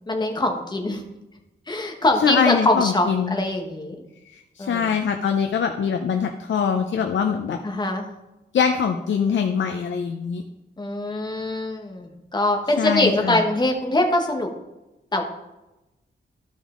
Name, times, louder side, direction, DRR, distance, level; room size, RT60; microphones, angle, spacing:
voice 1, 0.1-1.0 1.7-4.0 4.6-4.9 7.6-8.1 10.8-14.5 15.1-15.2, left 1 dB, 20° left, 2 dB, 1.2 m, -23 dB
voice 2, 2.2-3.4 4.3-7.6 8.5-10.4 12.8-13.4, left 7 dB, 90° left, 5 dB, 0.6 m, -23 dB
13.0 x 5.3 x 3.7 m, 0.99 s
wide cardioid pair, 175°, 19 cm